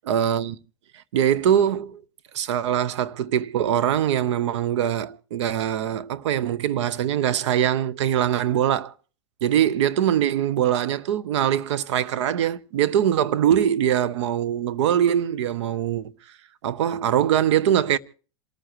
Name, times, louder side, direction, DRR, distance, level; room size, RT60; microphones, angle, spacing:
voice 1, 0.1-0.6 1.1-2.0 2.3-8.9 9.4-16.1 16.6-18.0, right 10 dB, 75° right, 0.9 m, -22 dB
27.5 x 14.0 x 3.0 m
supercardioid pair, 130°, 15 cm